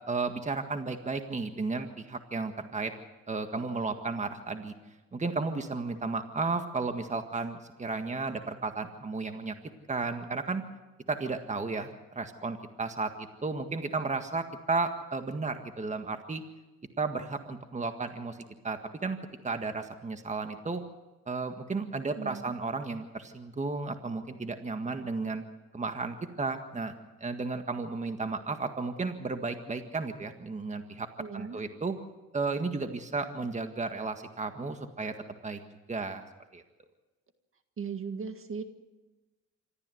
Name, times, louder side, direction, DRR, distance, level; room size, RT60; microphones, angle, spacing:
voice 1, 0.1-2.9 3.3-4.7 5.1-9.5 9.9-10.6 11.1-11.9 12.1-13.1 13.4-16.4 17.0-18.4 18.6-19.2 19.4-20.8 21.3-25.4 25.7-26.9 27.2-31.1 31.3-31.9 32.3-35.1 35.4-35.6 35.9-36.2 36.5-36.6, right 3 dB, 25° right, 7 dB, 1.7 m, -33 dB
voice 2, 22.1-22.5 31.2-31.6 37.8-38.6, right 6 dB, 45° right, 8 dB, 1.9 m, -37 dB
26.5 x 13.5 x 7.9 m, 1.1 s
cardioid pair, 90°, 30 cm